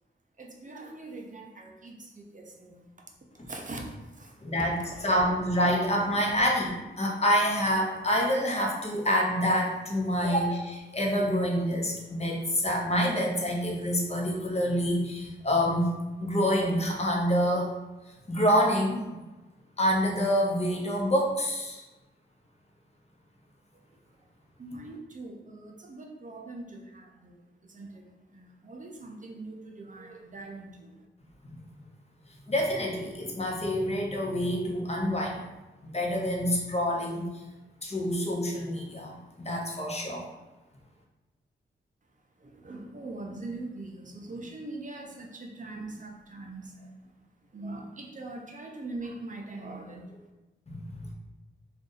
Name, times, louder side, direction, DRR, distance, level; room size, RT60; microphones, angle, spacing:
voice 1, 0.4-2.8 3.5-5.2 24.6-28.0 28.3-31.0 42.4-47.1 47.5-50.2, right 2 dB, 40° right, 1 dB, 0.7 m, -42 dB
voice 2, 4.4-15.9 16.2-17.7 18.3-19.0 19.8-21.8 32.5-35.4 35.8-37.3 37.8-40.3 50.7-51.1, equal, 30° left, -1 dB, 0.9 m, -27 dB
2.6 x 2.5 x 3.9 m, 1.1 s
cardioid pair, 50°, 20 cm